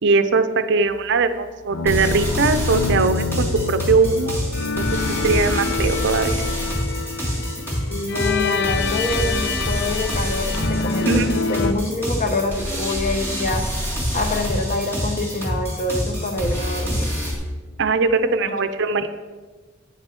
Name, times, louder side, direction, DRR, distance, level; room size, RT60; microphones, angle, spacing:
voice 1, 0.0-4.9 5.2-6.4 11.1-11.3 17.8-19.1, right 4 dB, 60° right, 11 dB, 0.5 m, -20 dB
sound 1, 1.7-11.7, left 4 dB, 60° left, 0.5 m, -26 dB
sound 2, 1.9-17.3, equal, 10° left, 2.8 m, -26 dB
voice 2, 7.9-11.2 11.5-13.7 14.1-17.1 18.5-18.6, left 2 dB, 40° left, 5 dB, 1.0 m, -26 dB
9.0 x 5.4 x 6.0 m, 1.4 s
head